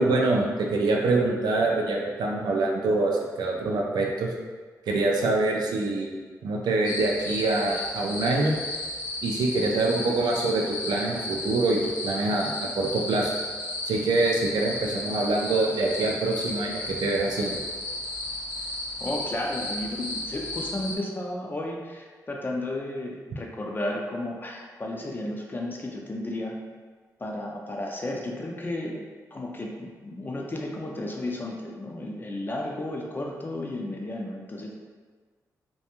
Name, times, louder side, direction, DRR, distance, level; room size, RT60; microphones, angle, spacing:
voice 1, 0.0-4.3 4.9-6.2 6.4-8.5 9.2-13.3 13.8-17.6, right 2 dB, 85° right, 0 dB, 0.4 m, -25 dB
sound 1, 6.8-21.0, left 1 dB, 90° left, 0.5 m, -34 dB
voice 2, 19.0-26.6 27.2-34.7, left 1 dB, 30° left, -1 dB, 0.4 m, -33 dB
2.4 x 2.2 x 2.9 m, 1.5 s
cardioid pair, 75°, 7 cm